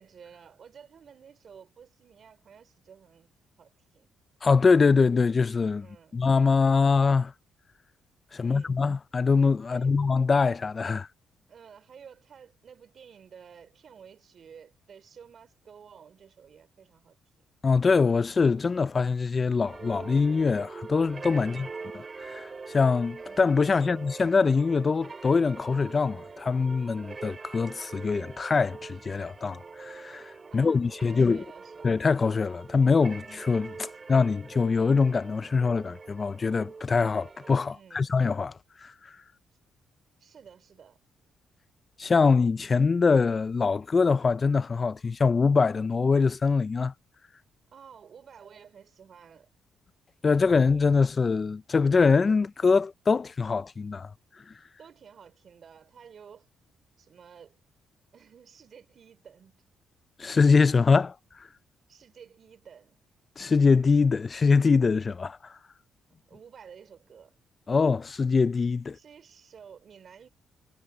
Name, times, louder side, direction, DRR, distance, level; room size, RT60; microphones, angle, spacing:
voice 1, 0.0-3.3 3.6-4.1 5.8-6.1 8.4-8.8 9.7-9.9 11.5-17.2 21.4-21.9 23.7-24.0 30.5-31.9 37.7-38.1 40.2-41.0 47.7-49.5 54.8-56.5 57.0-57.6 58.1-59.6 61.9-63.0 66.3-67.3 68.9-70.3, right 7 dB, 55° right, 4.1 m, -52 dB
voice 2, 4.4-5.9 6.1-7.3 8.3-11.1 17.6-21.7 22.2-31.4 31.8-38.5 38.8-39.1 42.0-46.9 50.2-54.1 60.2-61.1 63.4-65.4 67.7-69.0, left 4 dB, 35° left, 0.4 m, -23 dB
sound 1, 19.7-37.6, right 4 dB, 30° right, 2.7 m, -44 dB
cardioid pair, 90°, 0 cm